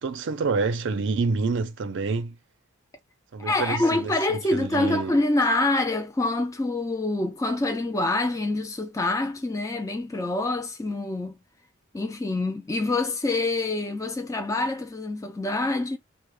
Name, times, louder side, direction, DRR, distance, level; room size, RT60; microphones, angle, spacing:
voice 1, 0.0-2.4 3.3-5.2, right 4 dB, 55° right, 0.4 m, -27 dB
voice 2, 3.4-11.4 11.9-16.0, left 2 dB, 15° left, 0.3 m, -26 dB
2.1 x 2.1 x 3.0 m
head